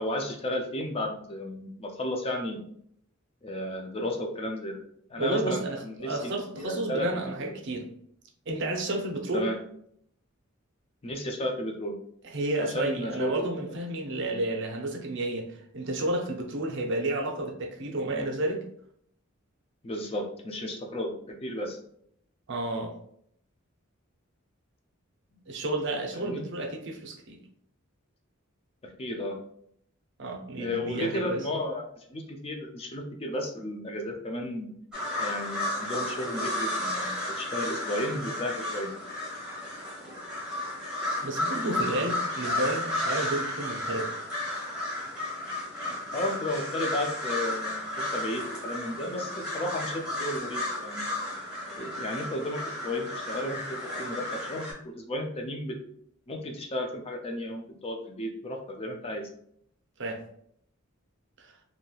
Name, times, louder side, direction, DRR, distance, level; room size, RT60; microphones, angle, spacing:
voice 1, 0.0-2.6 3.4-4.8 5.1-7.1 7.4-7.5 9.3-9.6 11.0-12.0 12.7-13.5 19.8-21.8 26.1-26.5 28.8-29.4 30.6-34.7 35.2-38.9 46.1-51.1 51.8-55.8 56.3-59.3, left 1 dB, 30° left, 3 dB, 0.4 m, -33 dB
voice 2, 5.2-7.9 8.5-9.5 12.2-18.6 22.5-23.0 25.5-27.4 30.2-31.5 41.2-44.1 60.0-60.2 61.4-61.5, right 1 dB, 60° right, 2 dB, 0.6 m, -31 dB
sound 1, 34.9-54.7, left 1 dB, 5° right, 1.2 m, -33 dB
2.9 x 2.7 x 2.3 m, 0.67 s
head